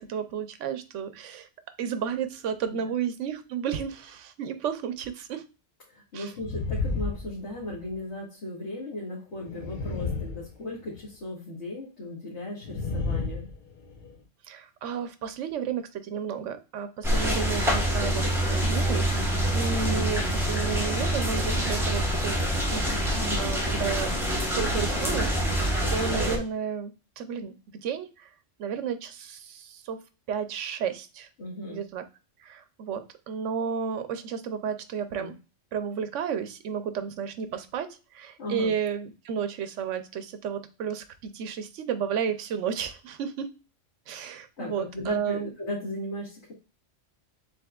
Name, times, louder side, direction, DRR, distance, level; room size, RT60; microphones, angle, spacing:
voice 1, 0.0-1.5 1.8-5.4 6.1-6.3 14.4-22.4 22.7-23.0 23.4-24.2 24.5-25.6 25.9-28.3 28.6-30.0 30.3-31.3 31.7-32.0 32.4-35.3 35.7-43.5 44.1-45.5, right 7 dB, 70° right, 10 dB, 1.0 m, -32 dB
voice 2, 5.9-13.5 23.2-23.5 31.4-31.8 35.2-35.3 38.4-38.7 44.6-46.5, left 1 dB, 60° left, -5 dB, 1.8 m, -36 dB
sound 1, 6.4-7.9 9.3-11.1 12.6-14.1, left 3 dB, 40° left, 1.0 m, -32 dB
sound 2, 17.0-26.4, equal, ahead, 1.1 m, -26 dB
7.0 x 2.9 x 2.3 m, 0.33 s
omnidirectional pair, 1.3 m